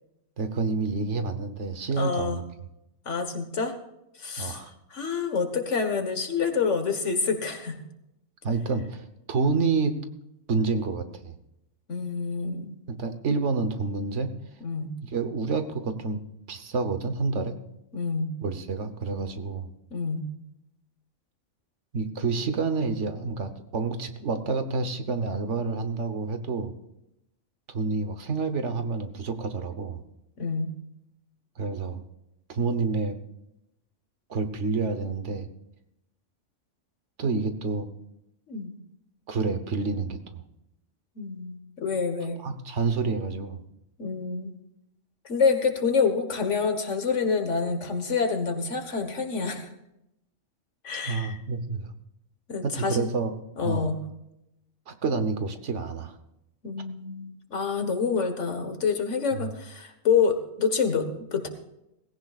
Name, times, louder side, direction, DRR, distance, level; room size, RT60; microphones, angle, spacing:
voice 1, 0.4-2.4 4.4-4.7 8.4-10.0 10.5-11.4 12.9-14.3 15.1-16.2 16.5-17.6 18.4-19.7 21.9-26.7 27.7-30.0 31.6-32.0 32.5-33.1 34.3-35.5 37.2-37.9 39.3-40.4 42.4-43.6 51.1-51.9 52.6-53.3 53.6-53.9 54.9-56.1 59.3-59.5, right 4 dB, 70° right, 9 dB, 1.4 m, -28 dB
voice 2, 2.0-2.4 3.0-3.7 4.2-4.6 4.9-7.8 11.9-12.7 14.6-14.9 17.9-18.3 19.9-20.2 30.4-30.7 38.5-38.7 41.2-42.4 44.0-44.5 45.2-49.7 50.8-51.4 52.5-53.1 53.6-54.0 56.6-61.5, left 5 dB, 75° left, 7 dB, 1.7 m, -27 dB
18.0 x 16.5 x 2.5 m, 0.85 s
omnidirectional pair, 1.3 m